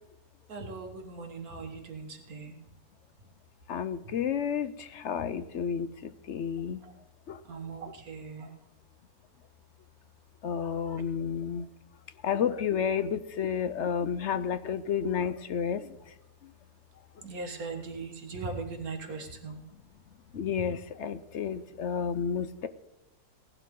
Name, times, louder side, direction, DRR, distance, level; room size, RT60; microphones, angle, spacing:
voice 1, 0.5-2.5 6.8-6.9 7.5-8.5 17.2-19.6, right 4 dB, 70° right, 5 dB, 1.8 m, -39 dB
voice 2, 3.7-5.9 6.3-6.8 7.3-7.4 10.4-11.6 12.2-15.9 20.3-22.7, left 7 dB, 60° left, 12 dB, 0.8 m, -31 dB
17.5 x 11.5 x 3.7 m, 0.94 s
omnidirectional pair, 1.6 m